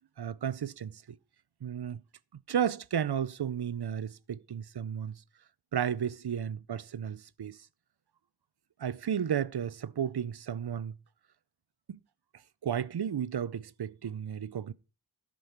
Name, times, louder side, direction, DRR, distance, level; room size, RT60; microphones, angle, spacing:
voice 1, 0.2-1.2 1.6-2.0 2.5-5.2 5.7-7.6 8.8-11.0 11.9-12.0 12.6-14.7, right 8 dB, 75° right, 0.6 m, -33 dB
13.5 x 5.4 x 4.3 m
wide cardioid pair, 50°, 40 cm